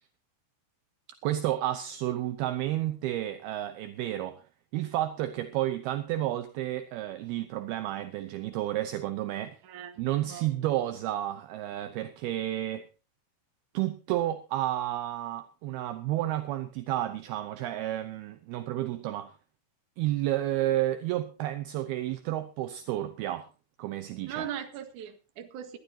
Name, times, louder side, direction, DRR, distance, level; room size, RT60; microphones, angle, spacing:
voice 1, 1.2-4.4 4.7-9.6 10.0-12.9 13.7-19.3 20.0-23.5 23.8-24.5, right 14 dB, 80° right, 2.3 m, -31 dB
voice 2, 24.3-25.8, right 9 dB, 60° right, 2.3 m, -39 dB
21.0 x 13.0 x 2.8 m
omnidirectional pair, 5.5 m